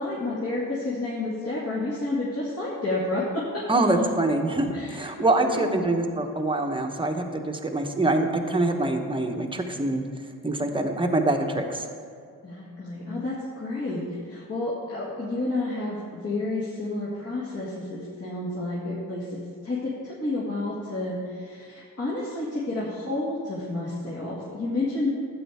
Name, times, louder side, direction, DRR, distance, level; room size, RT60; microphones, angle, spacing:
voice 1, 0.0-3.8 4.7-5.9 12.4-19.4 19.6-25.1, left 2 dB, 45° left, -8 dB, 2.1 m, -30 dB
voice 2, 3.7-10.0 10.4-11.8, right 2 dB, 15° right, 3 dB, 1.0 m, -25 dB
12.0 x 8.5 x 3.6 m, 2.3 s
cardioid pair, 80°, 36 cm